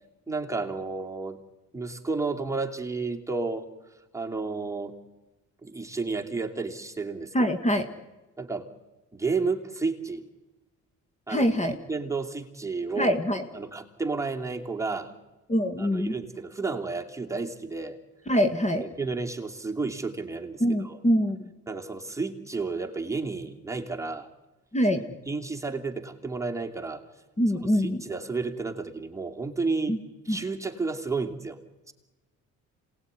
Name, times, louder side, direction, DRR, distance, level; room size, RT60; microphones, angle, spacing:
voice 1, 0.3-1.4 1.7-3.6 4.1-4.9 5.6-7.5 8.4-8.7 9.1-10.2 11.3-13.2 13.5-15.1 15.8-18.0 18.7-21.0 21.7-24.3 25.3-27.0 27.6-30.0 30.2-31.6 31.9-32.0, right 4 dB, 10° right, 2 dB, 2.8 m, -32 dB
voice 2, 7.3-7.8 11.3-11.8 13.0-13.4 15.5-16.1 18.3-18.8 20.6-21.5 24.7-25.0 27.4-28.0 29.9-30.0 30.3-30.4, equal, 25° left, 7 dB, 2.0 m, -24 dB
26.5 x 19.5 x 9.8 m, 1.1 s
cardioid pair, 90°, 30 cm